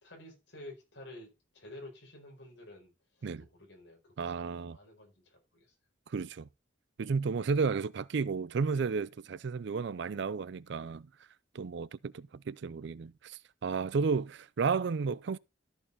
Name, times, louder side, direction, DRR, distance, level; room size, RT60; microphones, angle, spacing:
voice 1, 0.0-2.9 3.2-5.7 8.6-9.1 10.8-11.0, left 1 dB, 70° left, 4.6 m, -51 dB
voice 2, 4.2-4.8 6.1-6.5 7.0-11.1 11.5-15.4, right 5 dB, 65° right, 0.4 m, -33 dB
13.5 x 5.5 x 4.0 m
head